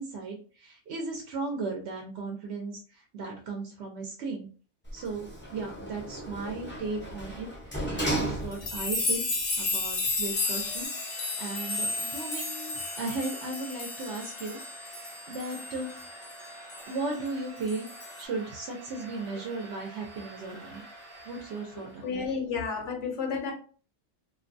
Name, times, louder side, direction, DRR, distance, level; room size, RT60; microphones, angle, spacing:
voice 1, 0.0-4.5 4.9-9.2 9.6-15.9 16.9-17.9 18.2-20.8 21.3-22.2, right 3 dB, 65° right, 0.8 m, -36 dB
Sliding door, 4.8-9.0 9.4-9.5, right 1 dB, 15° left, 0.5 m, -35 dB
sound 1, 8.5-16.3 16.7-16.8 17.7-18.2, left 3 dB, 50° left, 0.6 m, -33 dB
Domestic sounds home sounds, 10.1-22.2, right 1 dB, 45° right, 1.1 m, -47 dB
voice 2, 22.0-23.5, left 5 dB, 75° left, 1.0 m, -31 dB
2.5 x 2.2 x 2.5 m
omnidirectional pair, 1.3 m